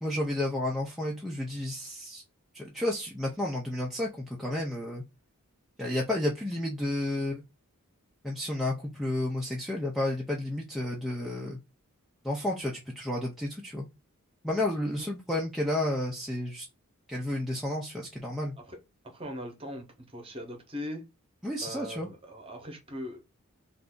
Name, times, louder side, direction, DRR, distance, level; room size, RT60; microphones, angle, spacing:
voice 1, 0.0-2.2 2.5-5.0 5.8-7.4 8.2-11.6 12.2-13.9 14.4-16.7 17.1-18.6 21.4-22.1, left 1 dB, ahead, 0.4 m, -31 dB
voice 2, 19.0-21.0 21.6-23.3, equal, 25° right, 0.8 m, -40 dB
2.6 x 2.4 x 3.5 m
head